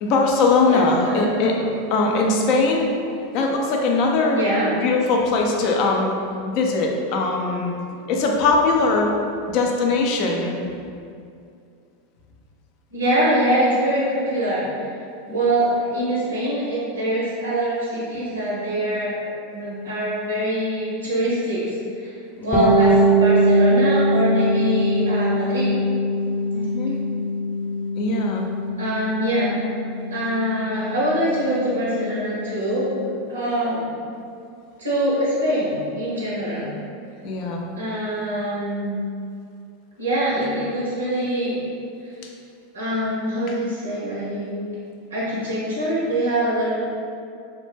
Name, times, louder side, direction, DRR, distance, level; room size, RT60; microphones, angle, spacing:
voice 1, 0.0-2.9 3.3-4.4 4.8-6.2 6.5-7.7 8.1-9.1 9.5-10.5 15.3-15.4 22.4-22.7 26.5-27.0 28.0-28.5 36.4-36.5 37.2-37.6 43.5-43.6, left 3 dB, 50° left, 0 dB, 0.4 m, -21 dB
voice 2, 0.7-1.4 4.3-4.7 12.9-14.7 15.3-22.1 22.4-25.7 28.8-29.6 30.1-33.9 34.8-36.7 37.8-39.0 40.0-41.6 42.7-44.7 45.1-46.7, right 1 dB, 85° right, -7 dB, 0.6 m, -24 dB
Bass guitar, 22.5-32.1, right 1 dB, 20° left, 0.7 m, -22 dB
2.1 x 2.0 x 3.1 m, 2.4 s
hypercardioid pair, 90°, 0 cm